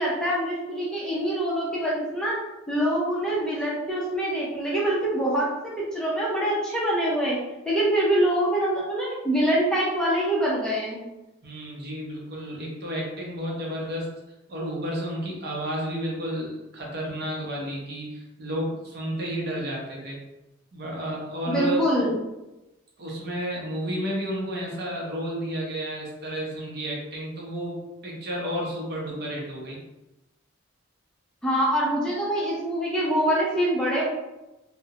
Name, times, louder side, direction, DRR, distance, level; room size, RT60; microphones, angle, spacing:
voice 1, 0.0-2.4 2.7-5.5 5.9-7.4 7.6-11.0 21.5-22.2 31.4-34.0, right 1 dB, 5° left, -6 dB, 0.4 m, -24 dB
voice 2, 11.4-14.1 14.5-20.2 20.7-21.9 23.0-29.8, equal, 55° right, -2 dB, 0.6 m, -31 dB
2.3 x 2.0 x 2.8 m, 1.0 s
head